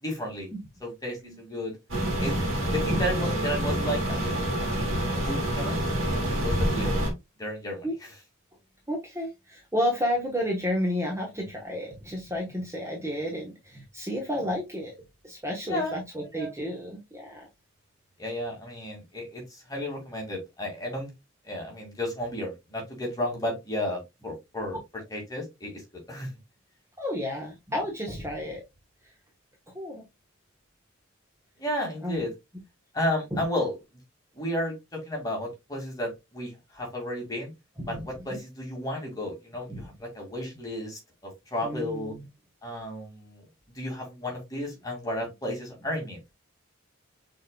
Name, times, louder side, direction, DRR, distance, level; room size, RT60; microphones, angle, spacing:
voice 1, 0.0-0.5 0.8-1.8 2.2-2.4 2.7-5.9 6.4-7.0 7.4-8.1 15.7-16.0 16.3-16.5 18.2-21.1 21.4-24.8 25.1-25.8 26.1-26.4 31.6-32.3 32.9-33.8 34.3-37.5 37.9-42.2 42.6-43.4 43.7-46.2, left 1 dB, 15° left, 2.1 m, -33 dB
sound 1, 1.9-7.1, right 1 dB, 70° right, 2.1 m, -27 dB
voice 2, 8.9-14.9 15.2-17.5 27.0-28.6 29.7-30.0 32.0-32.2 33.3-33.4 37.8-38.4 39.7-39.8 41.6-42.3, equal, 15° right, 1.0 m, -31 dB
6.3 x 3.8 x 2.2 m
head